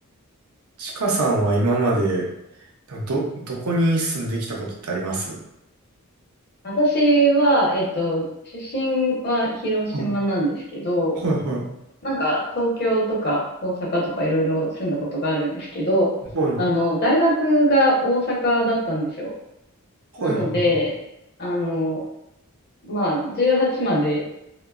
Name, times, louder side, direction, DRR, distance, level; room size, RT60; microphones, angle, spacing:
voice 1, 0.8-2.3 2.9-5.4 9.9-10.1 11.2-11.6 16.3-16.6 20.2-20.7, right 2 dB, 75° right, -2 dB, 0.7 m, -23 dB
voice 2, 6.6-8.2 8.5-11.1 12.0-16.1 16.6-19.3 20.2-20.9 21.4-22.0 22.8-24.2, equal, 45° left, -3 dB, 0.8 m, -21 dB
2.9 x 2.2 x 2.3 m, 0.85 s
head